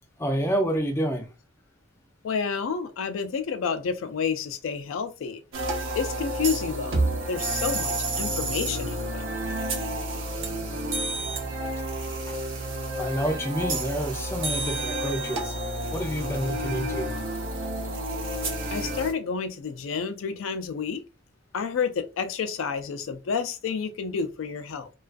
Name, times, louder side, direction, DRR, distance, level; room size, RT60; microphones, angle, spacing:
voice 1, 0.2-1.3 13.0-15.5 15.9-17.1, equal, 15° left, 0.4 m, -28 dB
voice 2, 2.2-5.4 6.0-9.3 18.7-21.0 21.5-24.9, left 6 dB, 85° left, 0.4 m, -30 dB
sound 1, 5.5-19.1, right 1 dB, 80° right, 0.8 m, -30 dB
2.3 x 2.3 x 2.4 m
head